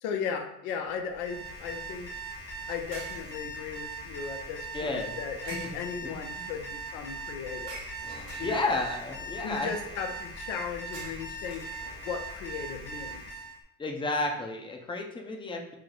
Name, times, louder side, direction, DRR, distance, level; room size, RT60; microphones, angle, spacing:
voice 1, 0.0-2.1 2.7-7.8 8.4-8.8 9.4-11.7 12.0-13.2, left 6 dB, 85° left, 5 dB, 0.7 m, -36 dB
sound 1, 0.8-1.1 2.9-3.8 5.5-6.2 7.7-9.0 10.9-12.2, right 2 dB, 80° right, 1.2 m, -46 dB
Alarm, 1.1-13.6, right 2 dB, 30° left, 0.9 m, -40 dB
voice 2, 4.7-5.1 5.7-6.1 8.4-9.7 13.8-15.8, left 2 dB, 10° left, 2 dB, 0.5 m, -32 dB
3.2 x 2.0 x 3.8 m, 0.82 s
supercardioid pair, 80°, 43 cm